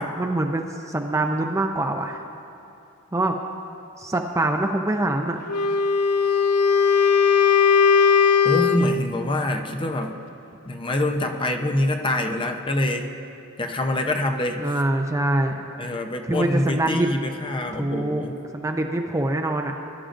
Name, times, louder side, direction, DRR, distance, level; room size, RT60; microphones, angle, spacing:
voice 1, 0.0-2.2 3.1-3.4 4.0-5.4 14.6-15.6 16.3-17.1 17.7-18.2 18.5-19.7, right 1 dB, 15° right, 4 dB, 0.4 m, -24 dB
Wind instrument woodwind instrument, 5.5-9.0, left 6 dB, 85° left, 0.3 m, -18 dB
voice 2, 8.4-10.1 10.6-13.1 13.6-14.6 15.8-18.3, left 1 dB, 25° left, 4 dB, 0.7 m, -25 dB
21.0 x 11.5 x 2.5 m, 2.8 s
head